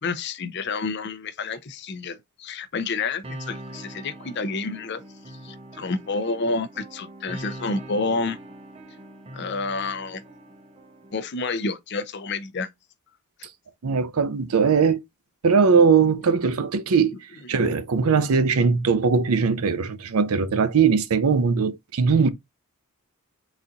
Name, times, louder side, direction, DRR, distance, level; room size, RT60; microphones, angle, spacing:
voice 1, 0.0-5.0 5.3-8.4 9.3-10.2 11.1-12.7 13.4-13.5, left 3 dB, 50° left, 0.5 m, -29 dB
sound 1, 3.2-11.3, right 1 dB, 25° right, 0.6 m, -42 dB
voice 2, 13.8-15.0 15.4-17.1 17.5-22.3, right 5 dB, 75° right, 0.5 m, -20 dB
4.1 x 2.4 x 3.8 m
head